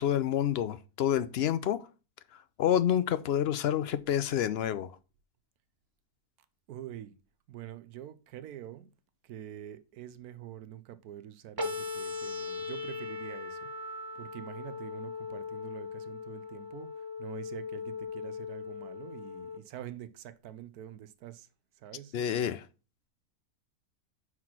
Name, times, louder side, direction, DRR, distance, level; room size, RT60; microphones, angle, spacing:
voice 1, 0.0-1.9 2.3-5.0 22.1-22.7, left 10 dB, 65° left, 0.6 m, -28 dB
voice 2, 6.7-7.2 7.5-8.9 9.2-21.5 21.8-22.1, right 11 dB, 85° right, 1.2 m, -46 dB
sound 1, 11.6-19.6, left 4 dB, 20° right, 0.7 m, -39 dB
5.9 x 4.7 x 5.9 m
omnidirectional pair, 1.5 m